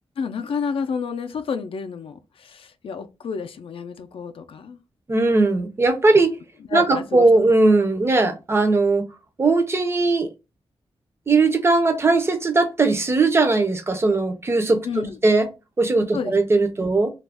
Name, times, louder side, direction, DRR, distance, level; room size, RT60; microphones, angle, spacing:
voice 1, 0.2-4.8 6.7-7.3 14.8-15.2 16.1-16.3, left 6 dB, 65° left, 0.4 m, -30 dB
voice 2, 5.1-6.3 6.7-9.0 9.4-10.3 11.3-14.8 15.2-15.5 15.8-17.1, right 3 dB, 25° right, 0.4 m, -19 dB
2.3 x 2.1 x 3.3 m
wide cardioid pair, 165°, 10 cm